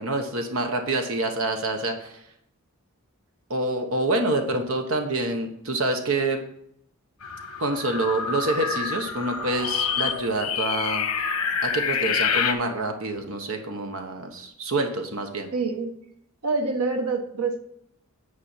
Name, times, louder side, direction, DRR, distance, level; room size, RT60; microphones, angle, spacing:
voice 1, 0.0-2.2 3.5-6.4 7.6-11.0 11.6-15.5, right 2 dB, 65° right, 4 dB, 1.2 m, -27 dB
sound 1, 7.2-12.5, left 7 dB, 80° left, 1.1 m, -27 dB
voice 2, 15.5-15.9 16.4-17.6, right 3 dB, 90° right, 5 dB, 1.3 m, -26 dB
9.8 x 4.9 x 5.7 m, 0.74 s
head